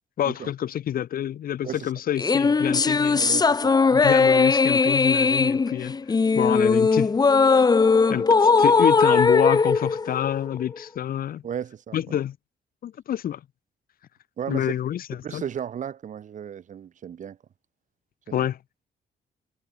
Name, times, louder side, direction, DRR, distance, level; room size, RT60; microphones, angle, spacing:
voice 1, 0.2-3.2 3.9-5.9 6.3-7.2 8.1-11.4 11.9-12.4 12.8-13.4 14.5-15.4 18.3-18.6, left 10 dB, 65° left, 6.0 m, -27 dB
sound 1, 2.2-10.8, left 4 dB, 25° left, 2.8 m, -19 dB
voice 2, 3.2-3.8 11.4-12.2 14.4-14.7 15.2-17.4 18.3-18.5, right 8 dB, 50° right, 6.8 m, -35 dB
cardioid pair, 155°, 16 cm